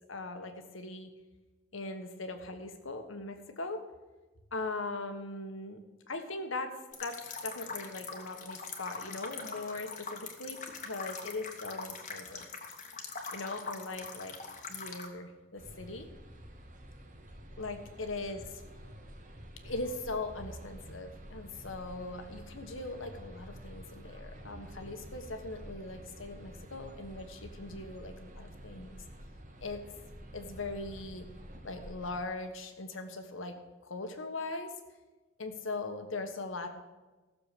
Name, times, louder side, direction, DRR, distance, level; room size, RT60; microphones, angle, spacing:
voice 1, 0.1-1.1 1.7-3.8 4.5-5.8 6.1-6.7 7.0-7.2 7.4-12.5 13.3-14.4 14.7-16.1 17.6-18.6 19.6-28.9 29.6-29.8 30.3-31.3 31.6-33.6 33.8-34.7 35.4-36.7, left 2 dB, 80° left, 7 dB, 1.4 m, -40 dB
sound 1, 6.9-15.1, left 5 dB, 40° left, 1.4 m, -43 dB
sound 2, 15.6-32.2, equal, 40° right, 1.4 m, -49 dB
15.5 x 6.9 x 6.8 m, 1.2 s
head